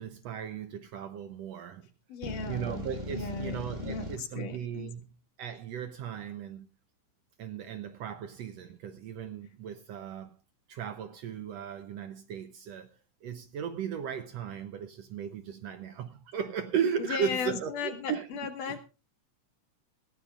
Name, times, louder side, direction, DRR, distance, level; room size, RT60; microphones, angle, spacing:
voice 1, 0.0-1.9 2.5-6.7 7.4-10.3 10.7-12.9 13.2-18.3 18.7-18.8, right 8 dB, 70° right, 1.6 m, -36 dB
voice 2, 2.1-2.8 3.1-4.9 17.1-18.8, left 6 dB, 75° left, 3.4 m, -36 dB
sound 1, 2.2-4.2, left 1 dB, 20° right, 1.2 m, -39 dB
20.5 x 15.5 x 2.5 m
omnidirectional pair, 3.7 m